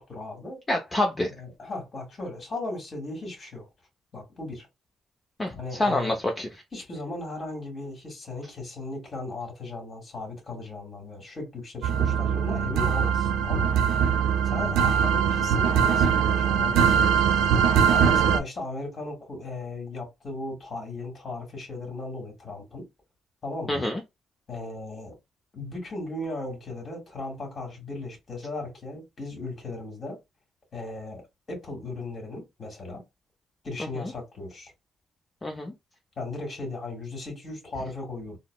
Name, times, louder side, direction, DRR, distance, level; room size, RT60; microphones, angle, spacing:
voice 1, 0.0-0.6 1.3-3.7 4.1-4.7 5.5-6.2 6.7-13.7 14.4-17.3 17.9-22.9 23.4-23.8 24.5-25.1 25.5-30.2 30.7-33.0 33.6-34.7 36.2-38.4, left 2 dB, 40° left, 1.9 m, -37 dB
voice 2, 0.7-1.3 5.4-6.6 23.7-24.0 35.4-35.7, left 1 dB, 25° left, 0.6 m, -27 dB
sound 1, 11.8-18.4, right 7 dB, 90° right, 0.5 m, -22 dB
3.8 x 2.0 x 2.3 m
cardioid pair, 90°, 0 cm